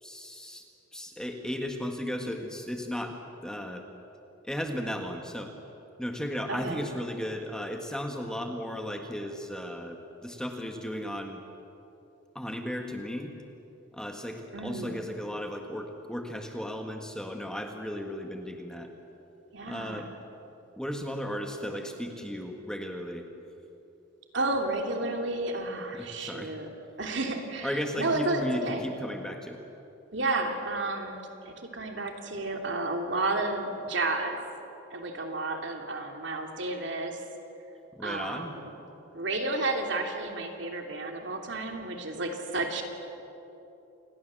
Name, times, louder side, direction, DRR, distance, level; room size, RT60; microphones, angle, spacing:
voice 1, 0.0-0.6 0.9-3.2 3.4-3.9 4.4-5.5 6.0-11.4 12.3-13.3 13.9-18.9 19.6-20.1 20.8-23.3 25.9-26.5 27.6-29.6 37.9-38.6, equal, 5° left, 3 dB, 1.5 m, -35 dB
voice 2, 6.5-6.9 14.5-15.0 19.5-20.0 24.3-26.7 27.0-27.7 28.0-28.8 30.1-34.4 34.9-37.2 38.0-38.7 39.1-42.8, right 2 dB, 60° right, 3 dB, 2.9 m, -31 dB
28.0 x 20.5 x 7.6 m, 2.9 s
head